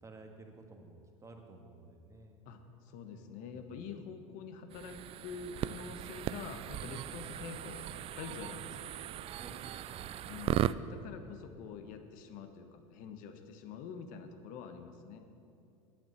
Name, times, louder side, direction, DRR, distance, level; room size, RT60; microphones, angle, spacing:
voice 1, 0.0-2.4 3.1-4.0 7.1-7.3 8.3-8.7 9.3-10.7, right 2 dB, 20° right, 2 dB, 1.7 m, -54 dB
voice 2, 2.4-8.9 10.3-15.2, left 6 dB, 60° left, 7 dB, 1.2 m, -46 dB
sound 1, 4.7-10.7, right 12 dB, 40° right, 0.3 m, -38 dB
9.1 x 8.1 x 8.1 m, 2.5 s
hypercardioid pair, 90°, 16 cm